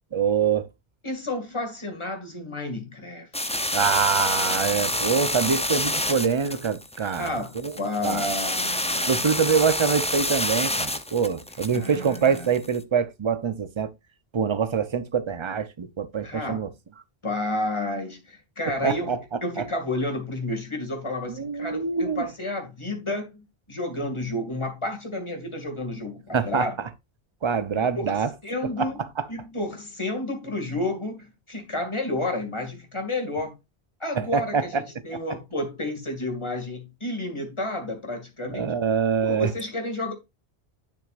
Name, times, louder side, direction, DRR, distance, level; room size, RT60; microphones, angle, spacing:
voice 1, 0.1-0.7 3.7-7.7 8.0-8.3 9.1-13.9 14.3-16.7 18.8-19.2 21.3-22.2 26.3-26.7 27.4-28.3 28.8-28.9 29.2-29.3 34.1-34.8 38.4-39.5, right 6 dB, 30° right, 0.7 m, -25 dB
voice 2, 1.0-3.8 7.0-9.2 11.7-12.5 16.2-16.6 17.2-26.8 27.8-33.6 34.0-38.8 39.2-40.1, left 2 dB, 25° left, 2.4 m, -31 dB
sound 1, 3.3-12.8, left 1 dB, 10° left, 0.5 m, -28 dB
10.5 x 6.4 x 2.5 m
omnidirectional pair, 1.1 m